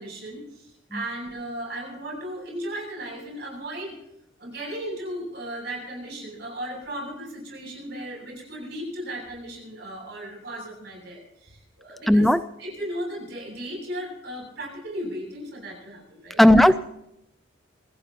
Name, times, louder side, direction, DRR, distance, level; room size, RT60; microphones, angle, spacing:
voice 1, 0.0-4.0 4.4-12.3 12.6-16.8, right 1 dB, 55° right, 1 dB, 7.5 m, -36 dB
voice 2, 12.1-12.4 16.4-16.8, left 1 dB, ahead, 12 dB, 0.5 m, -15 dB
26.5 x 15.5 x 3.0 m, 0.80 s
head